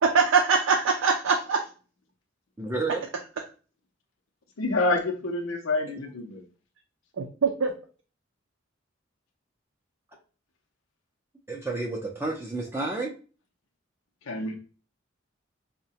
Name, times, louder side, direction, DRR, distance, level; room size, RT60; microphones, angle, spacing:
voice 1, 0.0-1.6 7.2-7.7, right 5 dB, 85° right, 2 dB, 0.5 m, -23 dB
voice 2, 2.6-3.1 11.5-13.1, right 3 dB, 10° right, 0 dB, 0.4 m, -30 dB
voice 3, 4.6-6.4 14.3-14.5, left 2 dB, 90° left, 1 dB, 0.6 m, -27 dB
4.6 x 2.1 x 2.7 m, 0.37 s
head